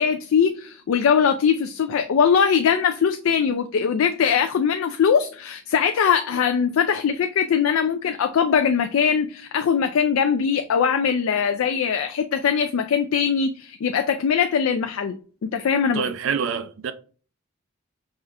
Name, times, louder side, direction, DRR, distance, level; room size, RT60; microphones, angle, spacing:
voice 1, 0.0-15.1 15.4-16.0, left 7 dB, 85° left, 0.4 m, -21 dB
voice 2, 15.9-16.9, right 6 dB, 70° right, 0.5 m, -26 dB
5.5 x 2.4 x 3.3 m
head